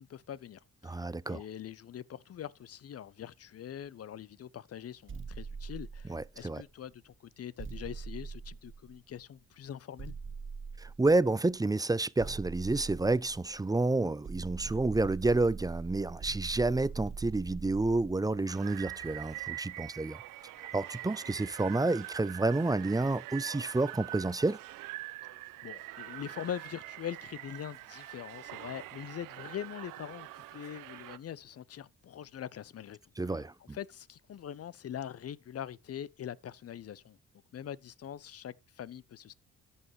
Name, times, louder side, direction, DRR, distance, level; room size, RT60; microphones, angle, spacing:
voice 1, 0.0-10.1 25.2-33.0 33.3-33.4 33.7-37.2 37.5-39.3, left 10 dB, 50° left, 0.7 m, -43 dB
voice 2, 0.8-1.4 6.1-6.6 10.8-20.2 20.7-24.6 33.2-33.8, right 2 dB, 10° right, 0.5 m, -29 dB
sound 1, 5.1-6.6 7.6-9.2 10.0-11.3 12.2-13.8 14.2-19.5, right 5 dB, 40° right, 1.0 m, -43 dB
sound 2, 18.5-31.2, right 17 dB, 80° right, 0.6 m, -44 dB
13.5 x 5.6 x 3.2 m
supercardioid pair, 50°, 32 cm